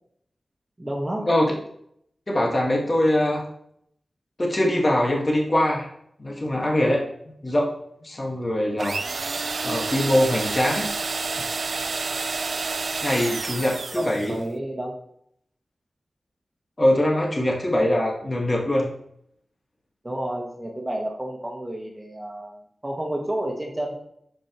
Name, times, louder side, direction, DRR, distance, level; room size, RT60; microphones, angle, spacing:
voice 1, 0.8-1.3 13.9-15.0 17.7-17.8 20.0-23.9, right 1 dB, 15° right, -2 dB, 1.4 m, -30 dB
voice 2, 2.3-3.5 4.4-5.9 6.2-7.0 7.4-7.7 8.0-9.0 9.6-10.9 13.0-14.3 16.8-18.9, left 1 dB, 30° left, -2 dB, 1.6 m, -22 dB
sound 1, 8.8-14.4, right 4 dB, 65° right, 0.4 m, -29 dB
10.0 x 7.2 x 3.0 m, 0.70 s
wide cardioid pair, 100°, 0 cm